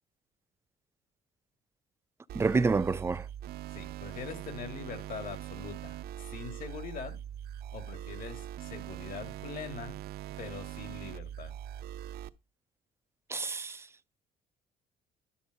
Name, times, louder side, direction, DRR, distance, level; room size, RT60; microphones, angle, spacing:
voice 1, 2.3-3.3 13.3-13.9, right 4 dB, 15° right, 0.4 m, -28 dB
sound 1, 2.3-12.3, right 11 dB, 65° right, 0.6 m, -42 dB
voice 2, 3.7-7.2 7.7-10.0 10.4-11.5, left 6 dB, 55° left, 2.3 m, -43 dB
11.0 x 4.5 x 6.4 m
cardioid pair, 110°, 17 cm